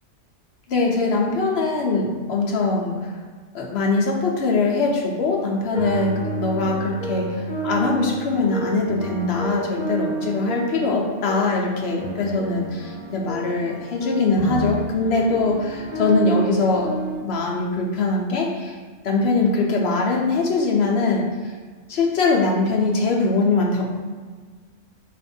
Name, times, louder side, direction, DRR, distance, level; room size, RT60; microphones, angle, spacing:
voice 1, 0.7-3.1 3.5-16.9 17.2-18.8 19.0-21.5 21.9-23.9, left 3 dB, 60° left, -1 dB, 0.9 m, -22 dB
sound 1, 5.4-17.2, right 3 dB, 15° left, 0.8 m, -31 dB
4.2 x 2.6 x 4.2 m, 1.5 s
omnidirectional pair, 1.3 m